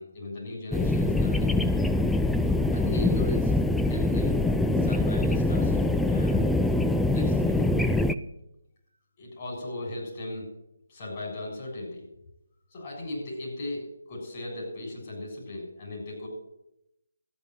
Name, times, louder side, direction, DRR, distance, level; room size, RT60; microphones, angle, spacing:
voice 1, 0.0-1.5 2.5-3.5 3.9-4.4 4.8-6.5 7.1-7.7 9.2-10.5 10.9-12.0 12.7-16.3, left 2 dB, 35° left, -1 dB, 6.9 m, -37 dB
sound 1, 0.7-8.1, left 2 dB, ahead, 0.4 m, -24 dB
13.5 x 9.3 x 7.7 m, 0.85 s
figure-of-eight pair, 150°, 0 cm